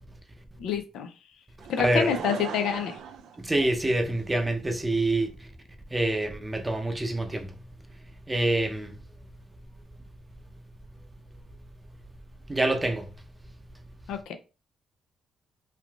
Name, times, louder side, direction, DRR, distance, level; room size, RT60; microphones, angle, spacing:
voice 1, 0.6-1.1 1.7-3.0 14.1-14.3, left 8 dB, 80° left, 0.4 m, -28 dB
Laughter / Crowd, 1.6-4.2 4.9-5.0, right 7 dB, 75° right, 0.3 m, -38 dB
voice 2, 3.4-5.5 5.9-7.6 8.3-9.0 12.5-13.1, right 2 dB, 15° right, 0.6 m, -26 dB
3.2 x 2.5 x 2.3 m
cardioid pair, 90°, 0 cm